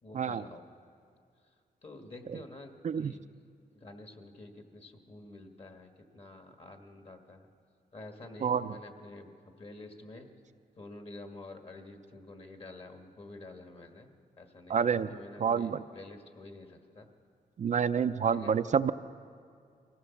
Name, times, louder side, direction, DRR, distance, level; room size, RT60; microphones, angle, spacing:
voice 1, 0.0-0.6 1.8-3.2 3.7-7.5 7.9-10.3 10.8-14.1 14.4-17.1 18.3-18.5, left 2 dB, 40° left, 5 dB, 1.7 m, -49 dB
voice 2, 8.4-8.8 14.7-15.1 15.4-15.8 17.6-18.9, right 7 dB, 50° right, 10 dB, 0.5 m, -28 dB
24.0 x 16.0 x 7.2 m, 2.3 s
wide cardioid pair, 115°, 16 cm